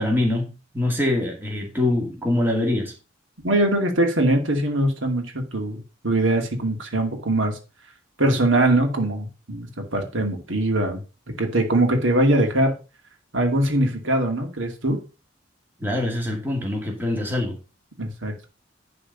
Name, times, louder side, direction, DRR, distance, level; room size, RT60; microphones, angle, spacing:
voice 1, 0.0-2.9 15.8-17.6, left 1 dB, 10° right, 0 dB, 2.2 m, -24 dB
voice 2, 3.4-5.3 5.5-7.6 8.2-11.0 11.4-12.8 13.3-15.0 18.0-18.5, right 1 dB, 80° right, 3 dB, 2.4 m, -22 dB
11.0 x 4.2 x 5.4 m, 0.32 s
head